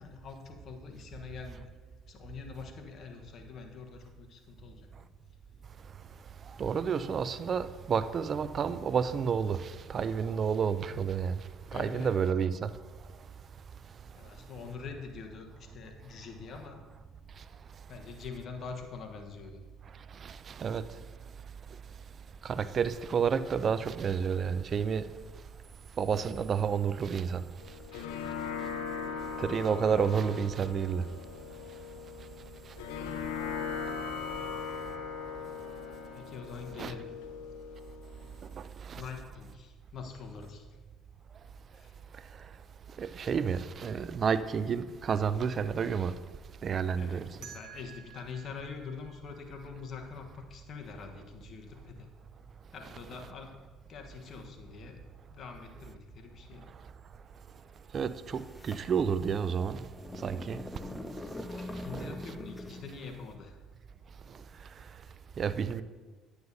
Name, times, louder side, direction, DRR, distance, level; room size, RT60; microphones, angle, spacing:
voice 1, 0.0-1.7 2.1-5.1 11.6-12.1 14.1-16.8 17.9-19.6 34.3-34.6 36.1-37.1 38.9-40.7 41.7-42.0 46.9-52.1 52.7-55.0 55.3-56.7 61.5-63.6, left 5 dB, 55° left, 1.1 m, -45 dB
voice 2, 6.6-11.4 11.7-12.7 20.2-20.8 22.4-25.1 26.0-27.4 29.4-31.1 36.8-36.9 38.9-39.0 43.0-46.1 46.6-47.3 57.9-59.8 60.2-60.6 61.9-62.1 65.4-65.8, right 6 dB, 45° right, 0.4 m, -30 dB
sound 1, 27.6-38.6, left 6 dB, 90° left, 0.7 m, -39 dB
sound 2, 47.4-50.3, right 10 dB, 70° right, 1.3 m, -53 dB
sound 3, 58.4-63.0, left 1 dB, 10° left, 0.7 m, -43 dB
9.5 x 9.4 x 2.7 m
supercardioid pair, 80°, 0 cm